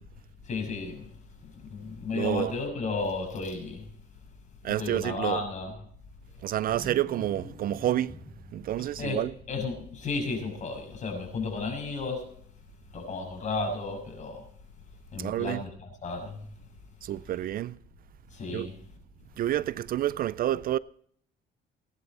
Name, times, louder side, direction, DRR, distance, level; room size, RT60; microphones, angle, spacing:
voice 1, 0.4-1.1 1.4-3.9 4.8-5.7 9.0-12.3 12.9-14.4 15.1-16.4 18.3-18.8, left 3 dB, 40° left, 6.6 m, -33 dB
voice 2, 2.1-2.5 4.6-5.4 6.4-8.1 8.5-9.3 15.2-15.6 17.0-17.8 18.5-18.7 19.4-20.8, right 12 dB, 55° right, 0.4 m, -29 dB
Wild animals, 5.7-10.7, equal, 5° left, 7.6 m, -47 dB
18.5 x 11.0 x 4.2 m
cardioid pair, 115°, 18 cm